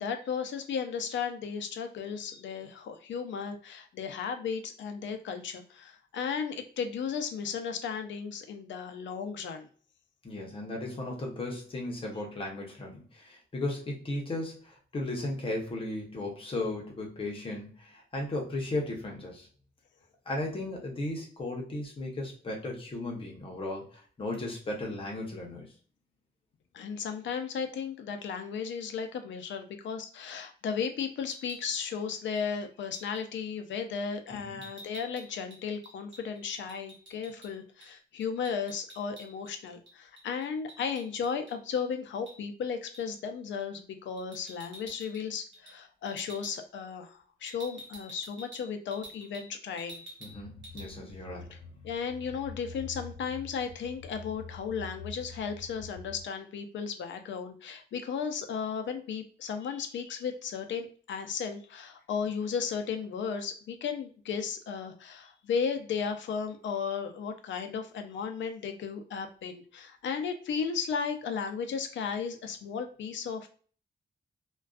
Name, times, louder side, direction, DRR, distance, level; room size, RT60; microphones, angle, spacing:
voice 1, 0.0-9.7 26.7-50.0 51.8-73.5, left 6 dB, 80° left, 6 dB, 0.4 m, -35 dB
voice 2, 10.2-19.5 20.3-25.7 34.3-34.6 50.2-51.6, left 2 dB, 30° left, -1 dB, 0.7 m, -36 dB
sound 1, 31.2-31.7 32.4-32.5 32.9-33.2 34.6-37.5 37.8-37.9 38.2-39.5 39.9-41.8 42.3-42.4 42.9-43.2 44.2-45.2 45.5-45.8 46.1-46.5 47.5-49.5 49.8-50.4 50.6-50.9, right 1 dB, 75° right, 0.9 m, -49 dB
sound 2, 50.3-56.2, left 3 dB, ahead, 1.0 m, -46 dB
2.4 x 2.2 x 2.3 m, 0.43 s
wide cardioid pair, 165°, 19 cm